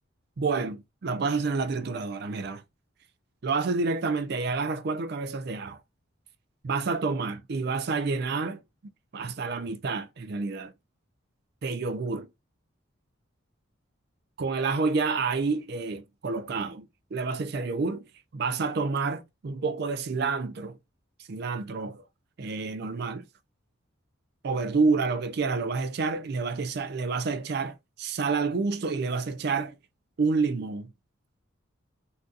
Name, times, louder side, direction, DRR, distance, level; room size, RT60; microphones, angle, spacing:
voice 1, 0.4-2.6 3.4-5.8 6.6-8.6 9.1-10.7 11.6-12.3 14.4-18.0 18.3-20.8 21.3-22.0 22.4-23.2 24.4-29.8 30.2-30.9, right 4 dB, 50° right, 0.4 m, -29 dB
3.8 x 2.6 x 2.4 m
head